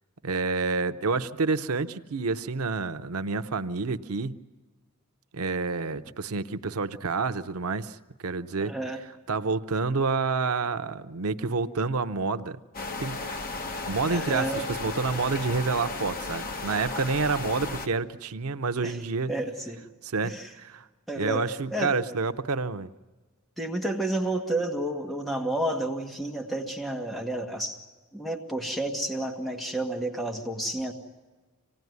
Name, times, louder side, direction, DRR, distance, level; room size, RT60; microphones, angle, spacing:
voice 1, 0.2-4.3 5.3-8.7 9.3-12.6 13.0-13.5 13.9-19.3 20.0-20.9 21.2-22.9, right 4 dB, 85° right, 10 dB, 0.8 m, -28 dB
voice 2, 8.6-9.0 14.1-14.7 18.8-19.0 19.3-19.8 20.2-20.5 21.1-21.4 21.7-21.9 23.6-27.8 28.1-30.9, right 1 dB, ahead, 2 dB, 1.7 m, -30 dB
sound 1, 12.7-17.9, left 3 dB, 40° left, 1.4 m, -34 dB
25.5 x 18.0 x 9.4 m, 1.3 s
head